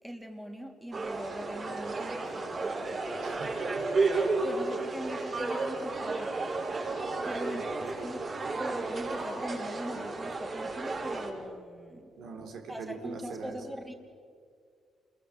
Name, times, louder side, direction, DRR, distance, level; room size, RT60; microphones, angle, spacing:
voice 1, 0.0-3.3 4.1-7.0 7.3-8.2 8.5-12.1 12.7-13.9, equal, 5° right, 3 dB, 2.9 m, -42 dB
sound 1, 0.9-11.3, right 3 dB, 45° right, 6.8 m, -32 dB
voice 2, 3.2-4.0 12.2-13.6, right 4 dB, 75° right, 4 dB, 3.6 m, -42 dB
28.5 x 22.0 x 7.7 m, 2.2 s
cardioid pair, 90°, 0 cm